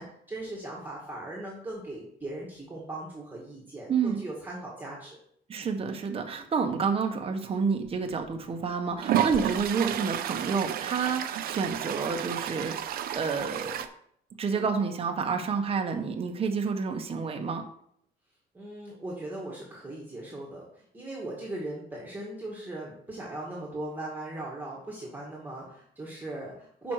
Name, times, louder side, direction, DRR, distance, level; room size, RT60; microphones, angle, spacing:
voice 1, 0.0-5.2 18.5-26.9, right 2 dB, 10° right, -3 dB, 1.8 m, -39 dB
voice 2, 3.9-4.2 5.5-13.8 14.4-17.6, right 5 dB, 35° right, 4 dB, 1.0 m, -29 dB
Toilet flush, 8.0-8.1 9.0-13.9, right 10 dB, 60° right, 0.6 m, -31 dB
6.1 x 5.2 x 4.6 m, 0.67 s
cardioid pair, 110°, 17 cm